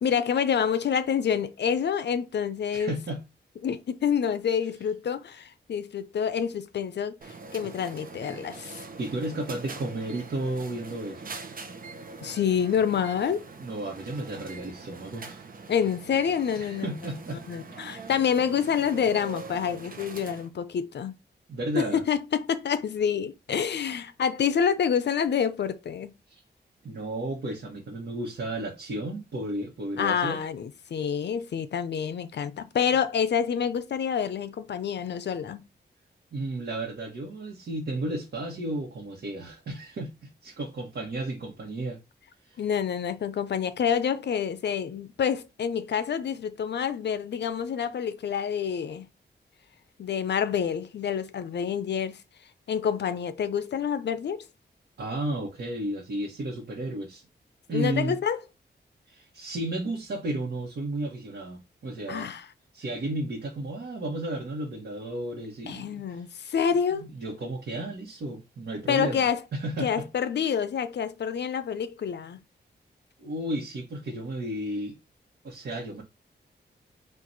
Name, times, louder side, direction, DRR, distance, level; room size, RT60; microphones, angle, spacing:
voice 1, 0.0-2.9 3.6-8.8 12.2-13.4 15.7-21.1 21.8-26.1 30.0-35.6 42.6-49.1 50.0-52.2 52.7-54.5 57.7-58.4 62.1-62.5 65.7-67.0 68.9-69.4 69.8-72.4, left 7 dB, 75° left, 0.5 m, -27 dB
voice 2, 2.7-3.3 9.0-11.5 13.6-15.4 16.5-17.4 17.8-18.1 21.5-22.0 26.3-26.4 26.8-30.4 36.3-42.0 55.0-57.2 57.7-58.2 59.1-62.3 62.7-66.2 66.9-69.2 69.5-70.1 73.2-75.0 75.4-76.0, right 1 dB, 70° right, 1.2 m, -33 dB
sound 1, 7.2-20.5, right 4 dB, 50° right, 0.8 m, -43 dB
4.5 x 2.5 x 3.9 m
wide cardioid pair, 130°, 18 cm